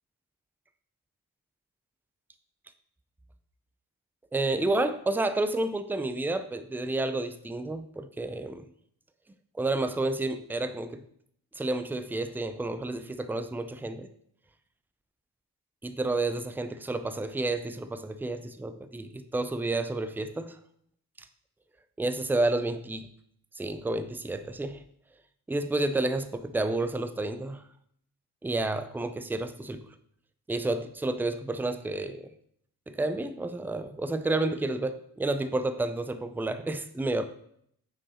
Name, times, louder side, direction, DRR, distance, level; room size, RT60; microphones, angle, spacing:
voice 1, 4.3-8.7 9.6-11.0 11.6-14.1 15.8-20.6 21.2-21.3 22.0-23.1 23.6-24.8 25.5-27.6 28.4-29.9 30.5-32.3 32.9-37.2, right 2 dB, 5° right, 10 dB, 0.4 m, -30 dB
6.0 x 4.6 x 4.2 m, 0.69 s
cardioid pair, 75°, 35 cm